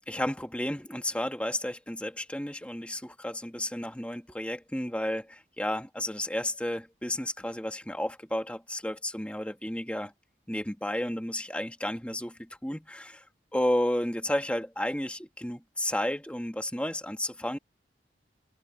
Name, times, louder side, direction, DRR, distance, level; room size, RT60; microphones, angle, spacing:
voice 1, 0.0-10.1 10.5-13.2 13.5-17.6, left 1 dB, 5° left, 1.7 m, -32 dB
head